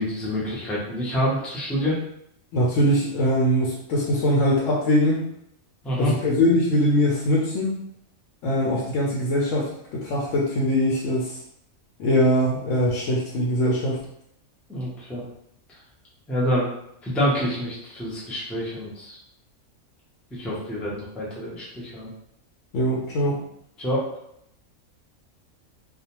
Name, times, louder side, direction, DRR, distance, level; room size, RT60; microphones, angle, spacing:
voice 1, 0.0-2.0 5.8-6.1 14.7-15.2 16.3-16.7 17.0-19.2 20.3-22.1 23.8-24.0, equal, ahead, -6 dB, 0.3 m, -27 dB
voice 2, 2.5-5.2 6.0-7.8 8.4-11.4 12.0-14.0 22.7-23.4, equal, 70° left, -4 dB, 0.9 m, -22 dB
2.4 x 2.1 x 2.9 m, 0.74 s
omnidirectional pair, 1.4 m